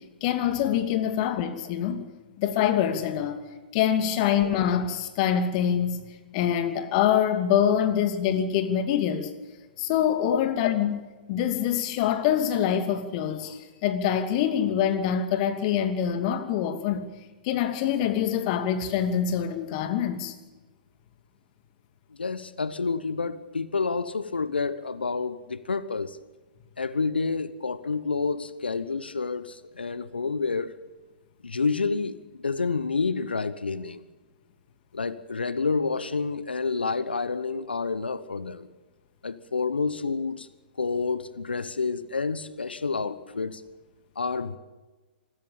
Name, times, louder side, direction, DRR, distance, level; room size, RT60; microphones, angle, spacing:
voice 1, 0.2-2.1 2.4-3.4 3.7-9.3 9.8-11.0 11.3-17.1 17.4-20.3, left 9 dB, 40° left, 2.7 m, -25 dB
voice 2, 22.2-26.2 26.8-30.7 31.4-34.0 34.9-38.7 39.2-40.5 40.8-43.6 44.2-44.6, left 4 dB, 80° left, 1.1 m, -29 dB
26.0 x 14.0 x 8.9 m
figure-of-eight pair, 115°, 5 cm